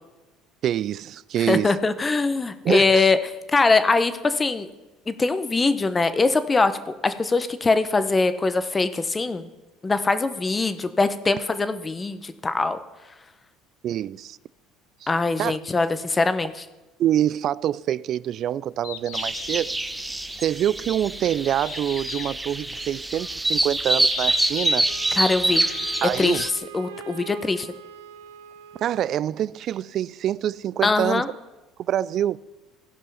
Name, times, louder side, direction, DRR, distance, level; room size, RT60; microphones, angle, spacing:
voice 1, 0.6-1.8 2.6-3.1 13.8-14.4 15.0-15.1 15.4-15.6 17.0-19.8 20.4-24.8 26.0-26.5 28.8-31.2 31.8-32.4, right 11 dB, 55° right, 0.3 m, -25 dB
voice 2, 1.5-4.7 5.1-9.5 9.8-12.8 15.1-16.6 25.1-25.6 26.0-26.5 26.7-27.7 30.8-31.3, left 3 dB, 20° left, 0.9 m, -22 dB
Bird, 18.7-26.7, left 12 dB, 80° left, 0.6 m, -39 dB
sound 1, 19.1-26.5, right 2 dB, 10° right, 0.7 m, -26 dB
Wind instrument woodwind instrument, 24.9-29.3, right 9 dB, 90° right, 0.6 m, -43 dB
16.0 x 5.4 x 5.6 m
supercardioid pair, 80°, 0 cm